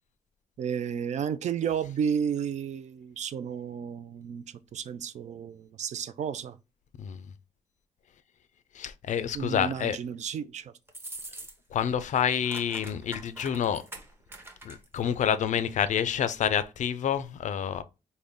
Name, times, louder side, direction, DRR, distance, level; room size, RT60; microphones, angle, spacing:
voice 1, 0.6-6.6 9.3-10.7, right 7 dB, 55° right, 0.4 m, -32 dB
voice 2, 8.8-10.0 11.7-13.8 14.6-17.8, left 8 dB, 60° left, 0.4 m, -28 dB
sound 1, 10.9-11.8 12.1-15.0, right 2 dB, 15° right, 0.8 m, -44 dB
3.7 x 2.1 x 3.5 m
cardioid pair, 70°, 14 cm